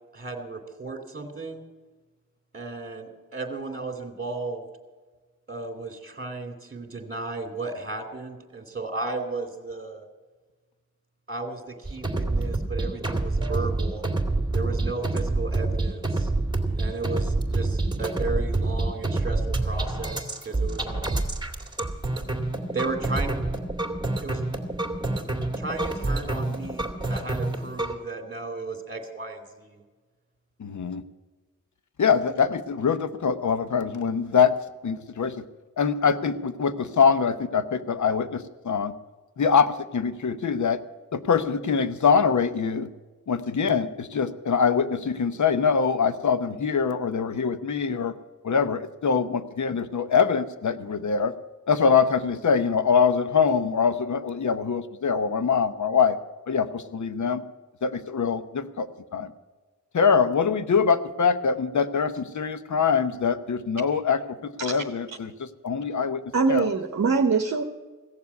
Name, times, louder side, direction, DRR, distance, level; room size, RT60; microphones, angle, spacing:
voice 1, 0.1-1.6 2.5-4.6 5.5-10.0 11.3-14.1 14.5-16.3 16.8-21.2 22.7-23.4 24.2-24.4 25.6-29.8, right 3 dB, 30° right, 4 dB, 2.4 m, -34 dB
sound 1, 11.9-28.0, right 2 dB, 15° right, 2.2 m, -27 dB
voice 2, 30.6-31.0 32.0-34.5 34.8-35.4 35.8-38.9 39.4-40.8 41.1-42.9 43.3-48.1 48.4-51.3 51.7-56.2 56.5-57.4 57.8-58.9 59.1-59.3 59.9-66.2 66.5-66.7, left 6 dB, 65° left, 12 dB, 0.9 m, -24 dB
voice 3, 66.3-67.6, right 4 dB, 55° right, 5 dB, 0.9 m, -23 dB
16.5 x 7.2 x 9.5 m, 1.3 s
wide cardioid pair, 90°, 32 cm